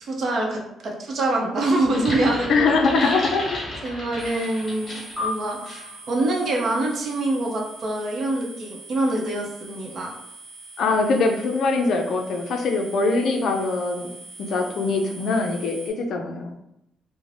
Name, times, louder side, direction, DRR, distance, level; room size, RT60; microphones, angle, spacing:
voice 1, 0.0-2.7 3.0-3.1 3.8-10.1, right 2 dB, 60° right, 0 dB, 0.6 m, -25 dB
sound 1, 1.8-5.2 5.7-5.9, left 1 dB, 40° left, 1.1 m, -33 dB
voice 2, 2.5-3.6 10.8-14.1 14.5-16.5, left 3 dB, 70° left, 3 dB, 0.4 m, -22 dB
sound 2, 4.2-15.9, right 3 dB, 35° right, 1.0 m, -43 dB
sound 3, 5.2-7.9, left 3 dB, 5° left, 0.6 m, -36 dB
2.5 x 2.0 x 3.2 m, 0.83 s
cardioid pair, 90°, 0 cm